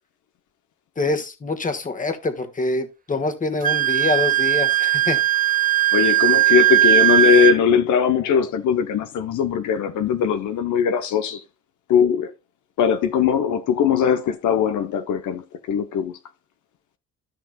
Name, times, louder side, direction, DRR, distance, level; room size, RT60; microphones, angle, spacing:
voice 1, 1.0-5.2, left 3 dB, 25° left, 1.5 m, -25 dB
Wind instrument woodwind instrument, 3.6-7.6, right 14 dB, 30° right, 0.9 m, -18 dB
voice 2, 5.9-11.4 11.9-12.3 12.8-16.1, left 7 dB, 75° left, 0.9 m, -20 dB
13.5 x 5.9 x 2.3 m
cardioid pair, 90°, 30 cm